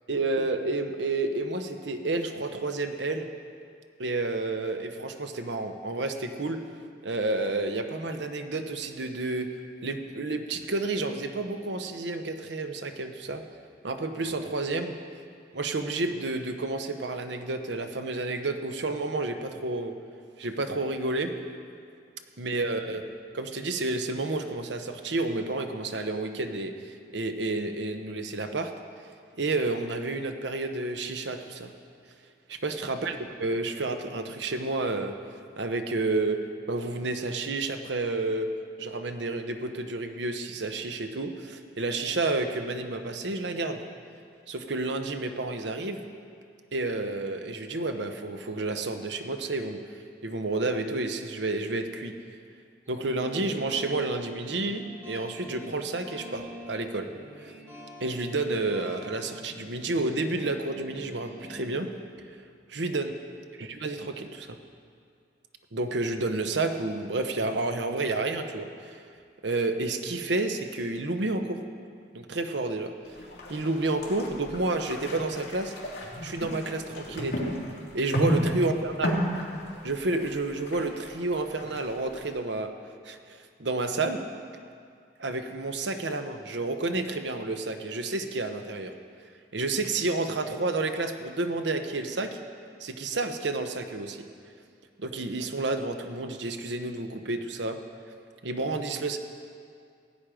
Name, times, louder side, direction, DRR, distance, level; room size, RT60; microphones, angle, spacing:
voice 1, 0.1-3.3 4.0-6.6 7.0-9.5 9.8-13.4 13.8-14.9 15.5-19.9 20.4-21.3 22.4-23.0 23.3-28.7 29.4-31.7 32.5-35.2 35.6-36.4 36.7-38.5 38.8-43.8 44.5-46.0 46.7-52.1 52.9-57.1 57.4-57.5 58.0-61.9 62.7-63.1 63.8-64.6 65.7-69.0 69.4-71.6 72.1-72.9 73.5-75.7 76.2-77.5 77.9-79.2 79.8-82.7 83.0-84.2 85.2-88.9 89.5-92.4 92.8-94.3 95.0-97.8 98.4-99.2, right 2 dB, 80° right, 6 dB, 0.9 m, -30 dB
sound 1, 52.9-61.7, equal, 15° right, 2.7 m, -46 dB
sound 2, 73.1-82.3, equal, 70° left, 2.5 m, -34 dB
16.5 x 9.1 x 5.0 m, 2.3 s
head